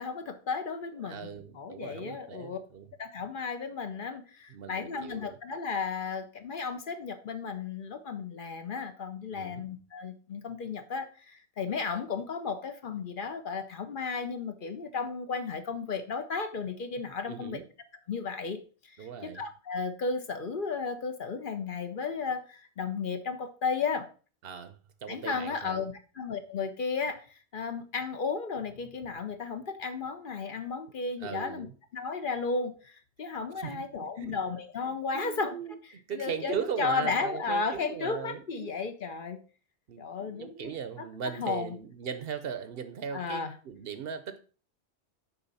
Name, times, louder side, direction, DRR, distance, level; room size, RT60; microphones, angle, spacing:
voice 1, 0.0-2.6 3.0-17.6 18.1-24.1 25.1-31.7 31.9-35.6 36.1-39.4 40.0-41.1 41.4-41.8 43.1-43.5, left 5 dB, 55° left, 0.8 m, -34 dB
voice 2, 1.0-2.9 4.5-5.4 9.3-9.6 17.3-17.6 19.0-19.4 24.4-25.8 31.2-31.7 33.6-34.4 34.8-38.7 39.9-44.4, right 7 dB, 60° right, 0.8 m, -39 dB
7.0 x 5.2 x 4.0 m
omnidirectional pair, 1.2 m